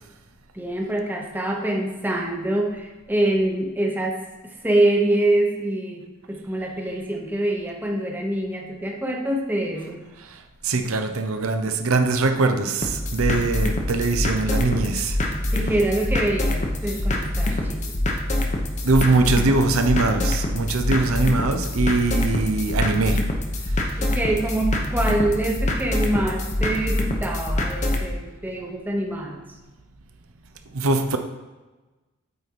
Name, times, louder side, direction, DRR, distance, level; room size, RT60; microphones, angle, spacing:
voice 1, 0.5-10.0 15.5-18.0 24.0-29.4, right 1 dB, 10° right, 0 dB, 0.9 m, -25 dB
voice 2, 10.6-15.2 18.8-23.2 30.7-31.2, right 3 dB, 85° right, 7 dB, 0.7 m, -22 dB
sound 1, 12.8-28.1, left 1 dB, 35° left, 0.8 m, -25 dB
8.3 x 4.2 x 4.6 m, 1.2 s
head